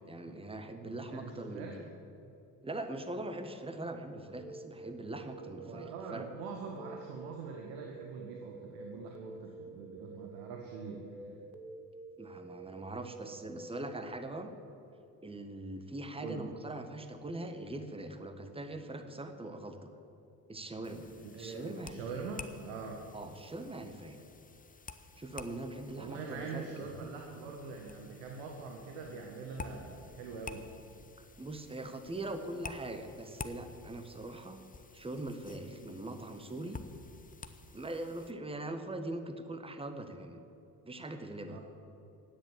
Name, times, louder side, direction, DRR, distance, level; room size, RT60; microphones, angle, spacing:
voice 1, 0.1-1.9 2.6-6.3 12.2-14.5 15.2-19.9 20.5-22.3 23.1-24.2 25.2-26.9 31.4-34.6 34.9-36.8 37.7-40.4 40.8-41.6, right 2 dB, 10° right, 7 dB, 1.5 m, -42 dB
voice 2, 1.1-1.8 5.6-11.1 16.2-16.5 21.2-23.0 26.0-30.7 35.7-36.0 41.5-41.6, right 4 dB, 65° right, 1 dB, 1.8 m, -43 dB
sound 1, 4.4-13.9, right 4 dB, 85° right, 1.0 m, -49 dB
sound 2, 20.8-38.3, left 4 dB, 15° left, 0.9 m, -51 dB
16.5 x 10.0 x 7.5 m, 2.8 s
figure-of-eight pair, 55°, 50 cm